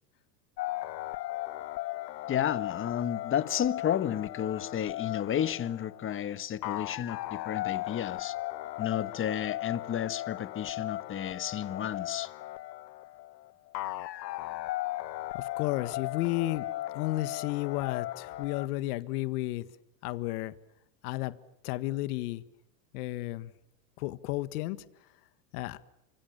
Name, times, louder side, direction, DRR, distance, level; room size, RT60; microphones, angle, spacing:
sound 1, 0.6-18.7, left 17 dB, 80° left, 1.3 m, -37 dB
voice 1, 2.3-8.4 8.8-12.3, left 10 dB, 25° left, 1.5 m, -32 dB
voice 2, 15.3-16.7 16.9-19.7 20.0-20.5 21.0-21.3 21.6-22.4 22.9-23.5 24.0-24.8 25.5-25.8, left 17 dB, 65° left, 1.8 m, -32 dB
29.0 x 26.5 x 7.4 m
supercardioid pair, 130°, 50 cm